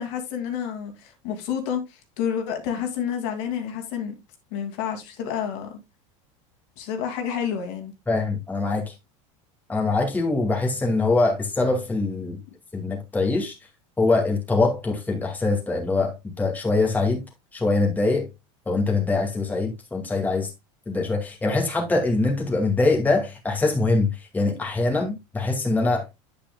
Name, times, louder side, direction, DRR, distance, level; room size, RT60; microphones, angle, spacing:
voice 1, 0.0-4.1 4.5-5.8 6.8-7.9, left 8 dB, 65° left, 2.3 m, -29 dB
voice 2, 8.1-8.9 9.7-12.4 12.7-13.5 14.0-17.2 17.5-18.3 18.7-20.5 20.9-26.1, left 3 dB, 10° left, 2.1 m, -23 dB
8.9 x 8.4 x 2.3 m
supercardioid pair, 130°, 17 cm